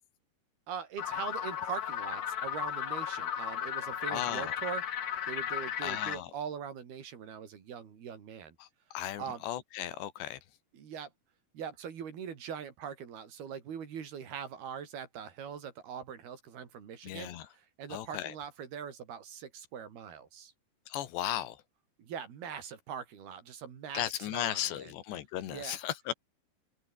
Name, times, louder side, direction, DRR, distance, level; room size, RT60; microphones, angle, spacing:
voice 1, 0.7-4.8 5.3-8.6 9.2-9.4 10.7-11.1 11.5-20.5 22.0-24.0 24.3-24.9 25.5-25.8, right 7 dB, 65° right, 5.1 m, -42 dB
sound 1, 1.0-6.2, left 9 dB, 50° left, 2.6 m, -35 dB
voice 2, 4.1-4.6 5.8-6.3 8.6-10.4 17.0-17.5 17.9-18.4 20.9-21.6 23.9-26.1, left 12 dB, 85° left, 4.0 m, -36 dB
omnidirectional pair, 4.9 m